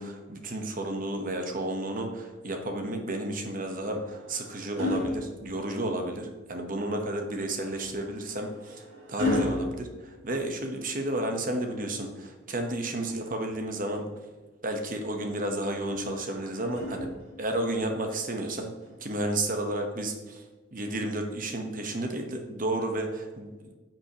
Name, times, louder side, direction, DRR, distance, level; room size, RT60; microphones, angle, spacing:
voice 1, 0.0-8.8 9.1-14.1 14.6-17.1 17.4-18.7 19.0-20.4 20.7-23.5, right 1 dB, 45° right, 4 dB, 1.1 m, -32 dB
sound 1, 3.6-6.1 7.7-10.9 12.6-13.8 15.8-17.6 18.8-19.0, left 1 dB, 90° right, 2.4 m, -35 dB
9.9 x 6.0 x 3.0 m, 1.2 s
head